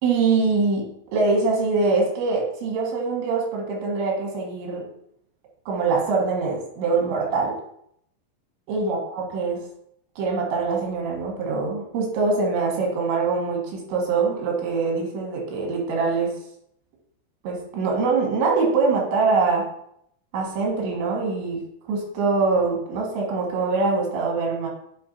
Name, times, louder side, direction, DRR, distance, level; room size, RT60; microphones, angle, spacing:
voice 1, 0.0-4.9 5.7-7.6 8.7-9.6 10.2-16.3 17.4-19.6 20.3-21.6 21.9-24.7, right 4 dB, 85° right, -1 dB, 4.2 m, -23 dB
9.0 x 6.4 x 2.8 m, 0.71 s
omnidirectional pair, 5.1 m